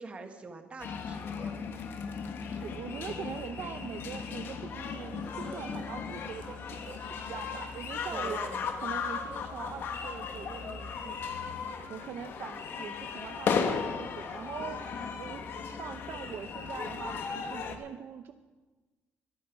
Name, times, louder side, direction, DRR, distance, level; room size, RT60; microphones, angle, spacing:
voice 1, 0.0-1.8 8.1-8.7, right 3 dB, 25° right, 6 dB, 1.5 m, -45 dB
sound 1, 0.8-17.8, left 6 dB, 55° left, 1.4 m, -36 dB
voice 2, 2.4-8.5 8.8-11.2 11.9-14.9 15.2-18.3, right 8 dB, 60° right, 8 dB, 0.7 m, -42 dB
sound 2, 5.1-10.5, left 1 dB, 20° left, 2.9 m, -53 dB
23.5 x 8.7 x 5.0 m, 1.2 s
cardioid pair, 130°, 4 cm